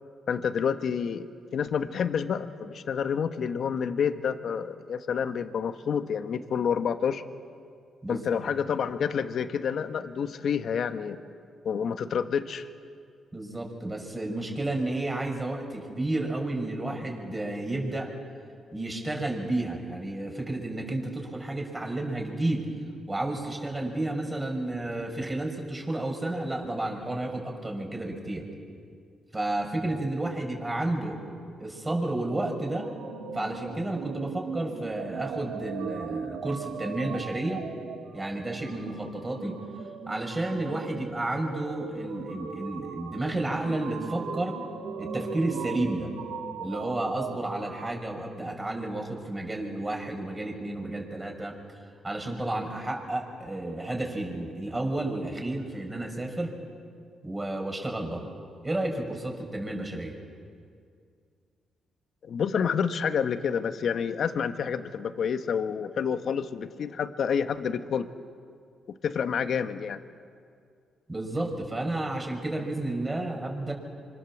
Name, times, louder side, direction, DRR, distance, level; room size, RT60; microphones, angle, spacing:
voice 1, 0.3-1.3 1.5-7.2 8.1-11.2 11.6-12.7 62.2-68.1 69.0-70.0, left 7 dB, 65° left, 9 dB, 1.3 m, -28 dB
voice 2, 13.3-18.2 18.7-22.7 23.1-28.5 29.3-31.2 31.6-32.9 33.3-37.6 38.1-39.6 40.1-44.6 45.0-46.1 46.6-51.5 52.0-56.5 57.2-58.3 58.6-60.2 71.1-73.7, right 2 dB, 20° right, 2 dB, 6.0 m, -31 dB
sound 1, 32.3-47.9, right 6 dB, 85° right, 1.7 m, -39 dB
26.0 x 26.0 x 7.4 m, 2.3 s
cardioid pair, 70°, 0 cm